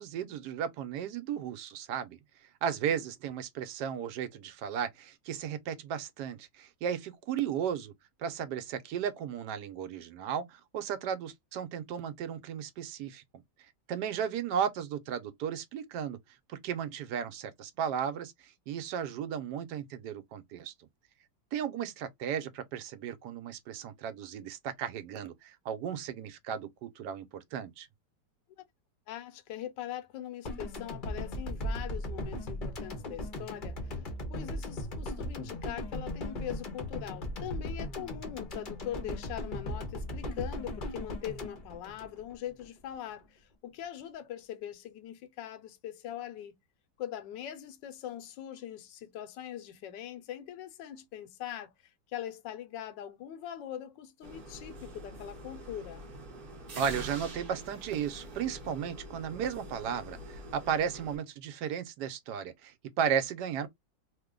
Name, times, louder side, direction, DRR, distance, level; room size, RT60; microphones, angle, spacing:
voice 1, 0.0-2.2 2.6-7.9 8.2-13.2 13.9-16.2 16.5-20.7 21.5-27.9 56.8-63.7, right 8 dB, 70° right, 1.1 m, -35 dB
voice 2, 29.1-34.0 34.3-46.5 47.0-56.1, left 11 dB, 80° left, 1.3 m, -42 dB
sound 1, 30.5-42.7, left 1 dB, 45° left, 0.6 m, -38 dB
sound 2, 54.2-61.2, right 1 dB, 40° right, 0.8 m, -45 dB
3.1 x 2.1 x 3.6 m
omnidirectional pair, 2.0 m